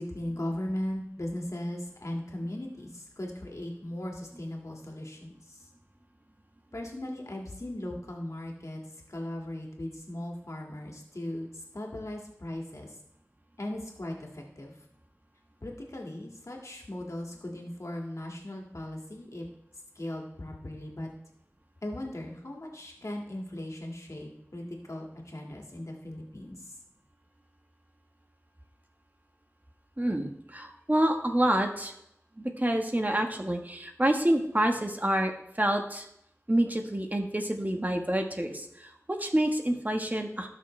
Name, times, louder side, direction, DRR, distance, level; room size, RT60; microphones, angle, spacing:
voice 1, 0.0-5.7 6.7-8.8 9.1-13.0 13.6-14.7 15.6-19.4 20.0-21.1 21.8-26.7, left 1 dB, 80° left, 0 dB, 2.0 m, -38 dB
voice 2, 30.0-31.9 32.4-35.3 35.6-36.0 36.5-40.5, right 1 dB, 35° right, 4 dB, 1.3 m, -27 dB
16.5 x 6.2 x 3.3 m, 0.77 s
wide cardioid pair, 40°, 5 cm